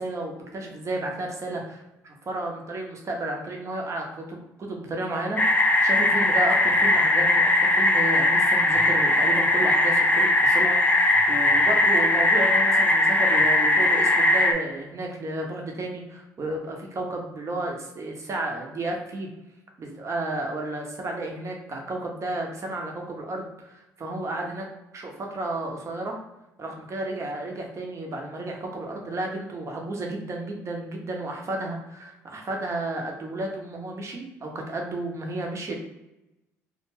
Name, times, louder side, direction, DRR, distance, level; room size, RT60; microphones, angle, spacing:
voice 1, 0.0-19.3 19.8-24.7 24.9-26.2 26.6-35.8, right 2 dB, 40° right, 1 dB, 0.8 m, -32 dB
sound 1, 5.4-14.5, left 2 dB, 20° left, 0.5 m, -20 dB
2.2 x 2.1 x 3.2 m, 0.92 s
hypercardioid pair, 60°, 8 cm